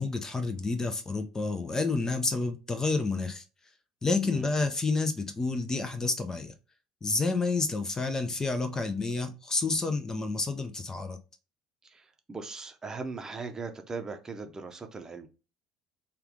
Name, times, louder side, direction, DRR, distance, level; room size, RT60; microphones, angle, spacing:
voice 1, 0.0-3.4 4.0-6.5 7.0-11.2, left 3 dB, 25° left, 0.5 m, -29 dB
voice 2, 11.8-15.3, right 4 dB, 25° right, 0.7 m, -39 dB
3.3 x 2.4 x 3.6 m
figure-of-eight pair, 60°, 3 cm